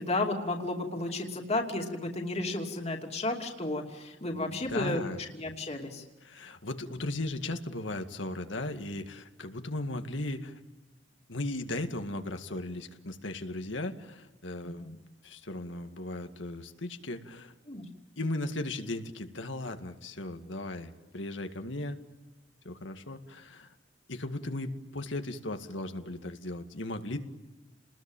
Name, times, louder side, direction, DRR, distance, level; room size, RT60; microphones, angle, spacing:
voice 1, 0.0-5.0 5.3-6.0 14.6-14.9 17.7-17.8, left 2 dB, 35° left, 2 dB, 2.8 m, -33 dB
voice 2, 4.3-5.2 6.2-10.6 11.3-15.0 15.2-17.5 18.2-22.0 22.6-23.7 24.1-27.2, left 2 dB, 85° left, 7 dB, 2.1 m, -37 dB
30.0 x 21.0 x 9.0 m, 1.1 s
head